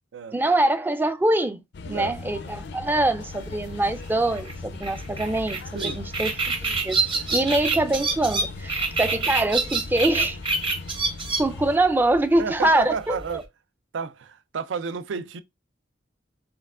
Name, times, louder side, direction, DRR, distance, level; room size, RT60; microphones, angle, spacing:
voice 1, 0.3-6.3 6.6-7.0 7.3-10.4 11.4-13.4, right 1 dB, 10° right, 0.3 m, -24 dB
sound 1, 1.7-11.8, left 3 dB, 65° left, 0.4 m, -39 dB
voice 2, 1.9-2.2 5.7-6.0 12.4-13.5 13.9-15.4, right 5 dB, 90° right, 0.4 m, -31 dB
sound 2, 3.3-13.4, right 4 dB, 30° right, 0.7 m, -28 dB
4.4 x 3.4 x 2.4 m
head